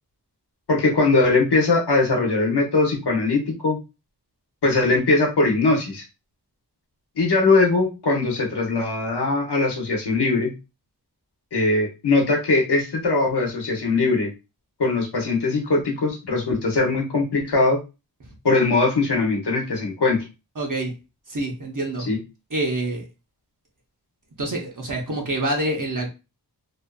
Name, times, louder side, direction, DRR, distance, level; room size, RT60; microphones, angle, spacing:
voice 1, 0.7-3.8 4.6-6.0 7.2-10.5 11.5-14.3 14.8-17.8 18.4-20.2 22.1-22.2, left 3 dB, 90° left, 0 dB, 0.9 m, -21 dB
voice 2, 20.6-20.9 21.3-22.1 22.5-23.1 24.4-26.1, right 1 dB, 50° right, 0 dB, 0.8 m, -26 dB
2.6 x 2.4 x 2.3 m, 0.27 s
wide cardioid pair, 60°, 39 cm